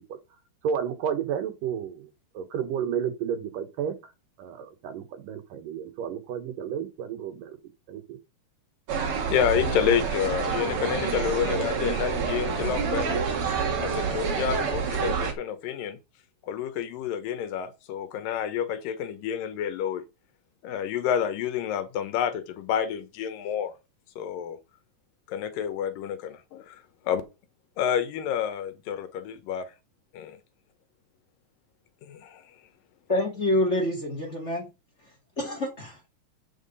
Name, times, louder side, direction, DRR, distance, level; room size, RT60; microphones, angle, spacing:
voice 1, 0.6-2.1 2.3-4.1 4.4-7.6 7.9-8.2, right 8 dB, 80° right, 3.0 m, -32 dB
sound 1, 8.9-15.3, right 5 dB, 50° right, 2.2 m, -28 dB
voice 2, 9.3-13.2 13.8-16.0 16.5-20.0 20.6-23.7 24.2-24.6 25.3-27.2 27.8-29.7 30.1-30.4 32.1-32.4, left 9 dB, 85° left, 2.7 m, -29 dB
voice 3, 33.1-34.6 35.4-36.1, left 1 dB, 25° left, 2.1 m, -27 dB
8.2 x 5.7 x 5.5 m
omnidirectional pair, 3.8 m